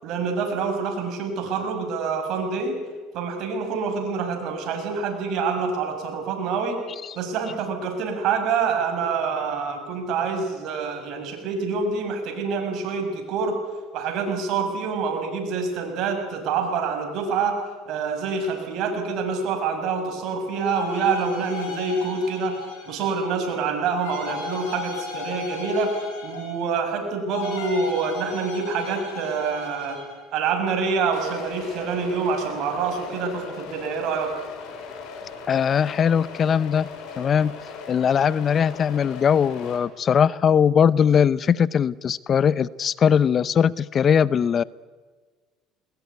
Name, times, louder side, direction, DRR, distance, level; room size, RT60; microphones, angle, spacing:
voice 1, 0.0-2.8 3.1-6.7 7.1-13.6 13.9-17.5 17.9-22.6 22.9-25.9 26.2-30.0 30.3-34.3, right 5 dB, 65° right, 4 dB, 6.6 m, -26 dB
sound 1, 20.5-23.4 24.0-26.8 27.3-30.2, left 6 dB, 85° left, 6.6 m, -36 dB
sound 2, 31.1-39.8, left 5 dB, 65° left, 6.3 m, -39 dB
voice 2, 35.5-36.9 37.2-37.5 37.9-44.6, left 7 dB, 40° left, 20 dB, 0.6 m, -20 dB
21.0 x 21.0 x 9.6 m, 1.4 s
supercardioid pair, 95°, 0 cm